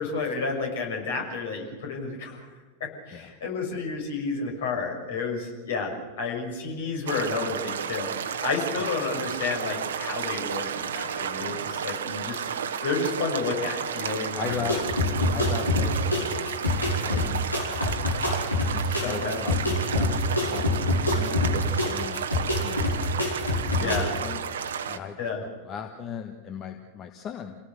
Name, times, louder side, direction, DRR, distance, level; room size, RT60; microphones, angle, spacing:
voice 1, 0.0-2.5 3.1-12.4 12.8-14.8 19.0-19.4 23.8-24.1 25.2-25.4, left 4 dB, 60° left, 2 dB, 6.4 m, -31 dB
sound 1, 7.1-25.0, right 7 dB, 65° right, 1.3 m, -32 dB
voice 2, 14.3-14.8 15.3-18.2 18.6-20.2 20.5-22.2 22.6-22.9 23.1-23.9 24.2-24.4 24.8-25.2 25.6-27.6, left 7 dB, 30° left, 6 dB, 1.5 m, -38 dB
sound 2, 14.5-24.0, left 2 dB, 85° left, 5.2 m, -26 dB
28.0 x 18.0 x 6.8 m, 1.3 s
figure-of-eight pair, 90°, 0 cm